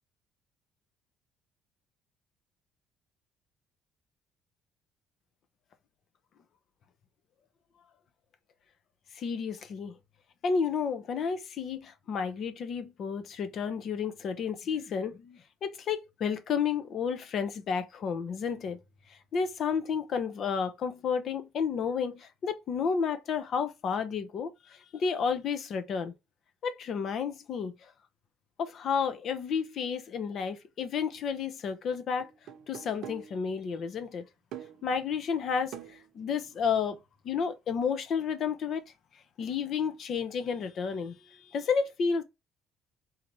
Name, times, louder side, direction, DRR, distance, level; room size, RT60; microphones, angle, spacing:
voice 1, 9.1-10.0 10.4-18.8 19.1-26.1 26.6-27.9 28.6-32.3 32.7-34.2 34.8-37.0 37.2-38.8 39.4-42.2, left 6 dB, 55° left, 0.8 m, -31 dB
sound 1, 31.1-31.3 32.2-33.4 34.5-34.9 35.7-37.0, right 10 dB, 70° right, 0.8 m, -46 dB
3.9 x 2.8 x 3.2 m
cardioid pair, 110°, 0 cm